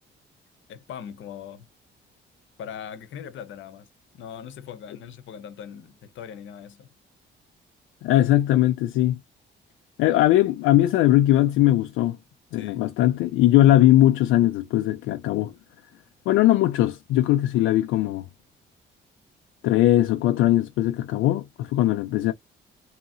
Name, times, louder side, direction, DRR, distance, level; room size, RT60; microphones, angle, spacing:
voice 1, 0.7-1.7 2.6-3.9 4.1-6.9 12.5-12.9, left 8 dB, 75° left, 0.8 m, -40 dB
voice 2, 8.0-9.2 10.0-12.2 12.5-15.5 16.3-18.2 19.6-22.3, left 14 dB, 90° left, 0.4 m, -20 dB
2.8 x 2.6 x 2.6 m
cardioid pair, 90°, 20 cm